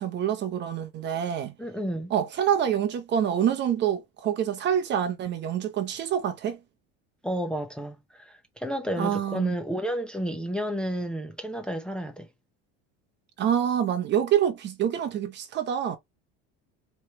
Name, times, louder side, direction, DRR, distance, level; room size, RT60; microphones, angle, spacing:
voice 1, 0.0-1.5 2.1-6.6 9.0-9.5 13.4-16.0, right 9 dB, 35° right, 0.8 m, -26 dB
voice 2, 1.6-2.1 7.2-12.3, equal, 5° left, 0.7 m, -31 dB
4.4 x 3.2 x 2.9 m
cardioid pair, 140°, 30 cm